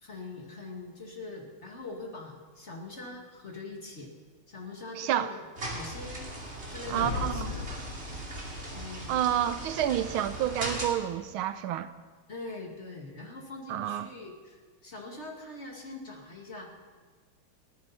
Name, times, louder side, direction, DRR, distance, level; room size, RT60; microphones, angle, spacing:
voice 1, 0.0-4.1 4.5-5.4 5.7-6.3 6.7-7.9 8.7-9.2 10.0-10.1 12.3-16.7, left 2 dB, 30° left, 1 dB, 2.2 m, -43 dB
voice 2, 5.0-5.3 6.9-7.5 9.1-11.9 13.7-14.1, right 11 dB, 80° right, 12 dB, 1.5 m, -29 dB
sound 1, 5.5-10.9, right 1 dB, 30° right, 2.6 m, -39 dB
sound 2, 7.0-8.6, left 4 dB, 85° left, 2.1 m, -36 dB
29.5 x 10.5 x 4.2 m, 1.4 s
omnidirectional pair, 2.3 m